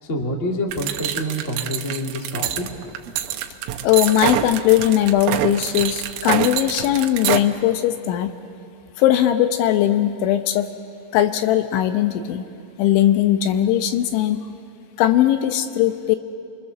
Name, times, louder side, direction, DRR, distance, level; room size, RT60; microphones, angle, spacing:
voice 1, 0.0-2.6, equal, 35° left, 1 dB, 1.1 m, -27 dB
sound 1, 0.7-7.4, right 12 dB, 90° right, 3.6 m, -26 dB
voice 2, 3.8-8.3 9.0-10.7 11.1-12.4 12.8-14.4 15.0-16.2, left 12 dB, 80° left, 8 dB, 3.1 m, -19 dB
30.0 x 24.0 x 6.9 m, 2.4 s
omnidirectional pair, 5.7 m